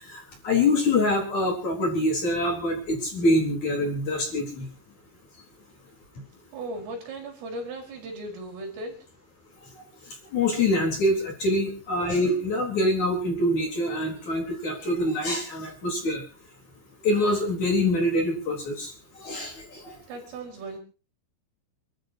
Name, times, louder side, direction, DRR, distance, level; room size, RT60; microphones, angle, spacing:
voice 1, 0.1-4.7 10.3-16.2 17.0-19.9, left 1 dB, 40° left, 1 dB, 4.9 m, -25 dB
voice 2, 6.5-9.1 20.1-20.8, right 2 dB, 75° right, 1 dB, 7.3 m, -37 dB
29.5 x 13.0 x 2.9 m, 0.36 s
omnidirectional pair, 5.9 m